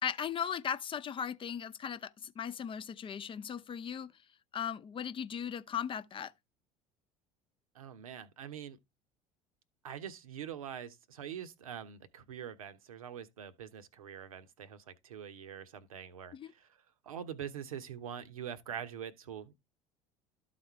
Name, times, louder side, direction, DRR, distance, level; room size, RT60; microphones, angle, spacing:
voice 1, 0.0-4.1 4.5-6.3 16.3-16.5, left 8 dB, 30° left, 0.7 m, -37 dB
voice 2, 7.7-8.8 9.8-19.6, right 9 dB, 80° right, 1.0 m, -44 dB
12.5 x 4.3 x 4.6 m
figure-of-eight pair, 70°, 18 cm